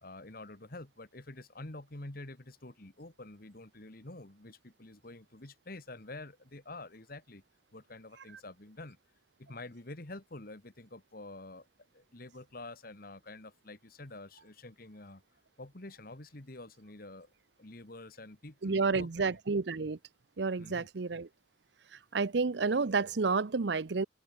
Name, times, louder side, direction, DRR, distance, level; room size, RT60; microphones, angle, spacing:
voice 1, 0.0-7.4 7.7-9.0 9.4-11.7 11.9-15.2 15.6-17.3 17.6-19.4 20.6-20.9, left 2 dB, 50° left, 1.9 m, -48 dB
voice 2, 18.6-20.0 20.4-21.3 22.1-24.0, right 4 dB, 65° right, 0.6 m, -30 dB
head